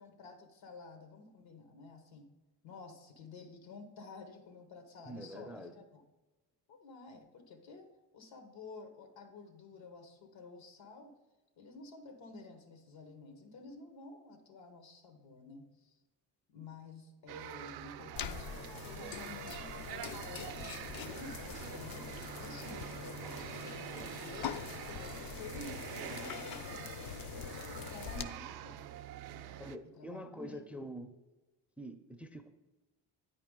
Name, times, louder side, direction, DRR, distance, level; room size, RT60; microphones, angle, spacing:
voice 1, 0.0-2.3 2.6-6.0 6.7-11.1 11.6-16.0 16.5-27.0 27.8-29.0 29.3-30.9, left 3 dB, 80° left, 7 dB, 1.2 m, -52 dB
voice 2, 5.1-5.8 28.1-28.4 29.6-31.1 31.8-32.5, equal, 5° right, 9 dB, 0.4 m, -45 dB
sound 1, 17.3-29.8, right 11 dB, 60° right, 0.5 m, -46 dB
sound 2, 18.2-28.2, left 8 dB, 55° left, 0.5 m, -44 dB
8.8 x 4.9 x 3.7 m, 1.1 s
supercardioid pair, 65°, 45 cm